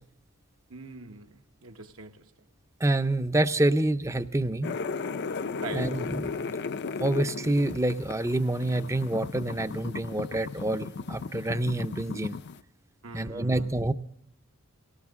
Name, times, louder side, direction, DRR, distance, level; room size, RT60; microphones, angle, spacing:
voice 1, 0.7-2.2 5.6-6.0 13.0-13.7, right 4 dB, 65° right, 1.1 m, -42 dB
voice 2, 2.8-4.7 5.7-6.3 7.0-12.4 13.1-13.9, right 1 dB, 15° right, 0.6 m, -27 dB
sound 1, 4.6-12.6, left 4 dB, 50° left, 0.5 m, -35 dB
19.0 x 18.0 x 3.6 m
head